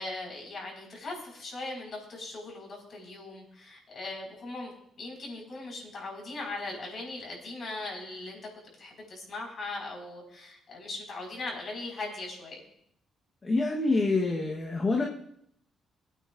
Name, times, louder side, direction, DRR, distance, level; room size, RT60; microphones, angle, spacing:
voice 1, 0.0-8.4 8.8-12.6, left 2 dB, 50° left, 0 dB, 4.9 m, -39 dB
voice 2, 13.4-15.0, left 3 dB, 35° left, 0 dB, 1.2 m, -26 dB
21.5 x 9.3 x 2.5 m, 0.72 s
cardioid pair, 90°, 0 cm